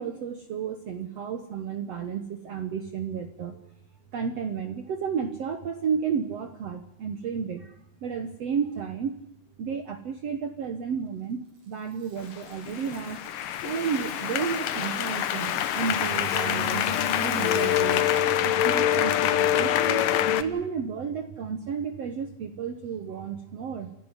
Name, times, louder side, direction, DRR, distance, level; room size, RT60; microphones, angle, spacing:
voice 1, 0.0-3.6 4.1-7.7 8.0-9.2 9.6-13.2 13.6-23.9, right 6 dB, 75° right, 8 dB, 1.5 m, -32 dB
Rattle (instrument), 11.6-18.5, right 3 dB, 40° right, 4.6 m, -45 dB
sound 1, 12.3-20.4, left 11 dB, 70° left, 2.3 m, -25 dB
28.0 x 11.5 x 9.8 m, 0.79 s
omnidirectional pair, 4.8 m